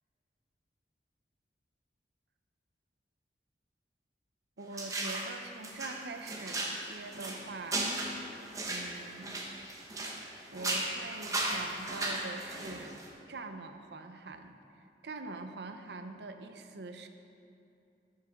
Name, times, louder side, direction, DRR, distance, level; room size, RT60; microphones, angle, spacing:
voice 1, 4.6-7.8 8.7-9.4 10.5-13.0 13.3-17.1, right 3 dB, 70° right, 7 dB, 0.6 m, -44 dB
sound 1, 4.7-5.3 5.6-10.3 10.5-13.1, right 2 dB, 20° right, 0.9 m, -36 dB
12.0 x 7.5 x 3.6 m, 2.7 s
head